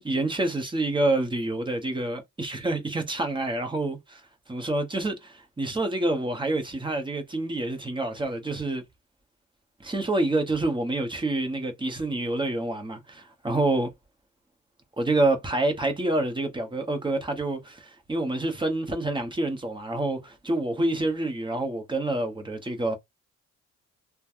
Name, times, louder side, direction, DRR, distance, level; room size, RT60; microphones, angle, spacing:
voice 1, 0.0-4.2 4.5-8.8 9.8-13.9 15.0-23.0, right 2 dB, 15° right, 1.1 m, -27 dB
3.1 x 2.3 x 2.6 m
cardioid pair, 90°, 30 cm